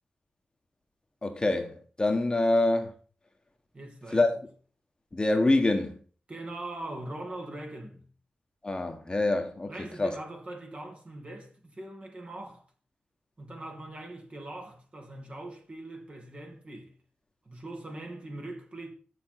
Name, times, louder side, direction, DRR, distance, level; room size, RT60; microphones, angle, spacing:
voice 1, 1.2-2.9 4.1-4.4 5.1-6.0 8.6-9.7 10.0-10.1, left 2 dB, 25° left, 1.4 m, -25 dB
voice 2, 3.7-4.3 6.3-8.1 9.7-12.6 13.4-16.9 17.4-18.9, right 1 dB, 35° right, 2.8 m, -41 dB
7.4 x 7.0 x 5.8 m
cardioid pair, 75°, 3 cm